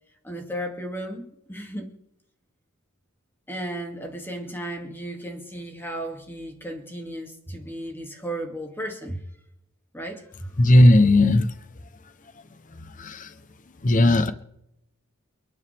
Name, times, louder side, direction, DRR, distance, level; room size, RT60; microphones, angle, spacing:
voice 1, 0.2-1.9 3.5-9.2 9.9-10.5, right 1 dB, 10° left, 2.4 m, -34 dB
voice 2, 10.6-11.5 12.8-13.3 13.8-14.3, left 1 dB, 40° left, 0.8 m, -17 dB
29.5 x 9.9 x 3.5 m
head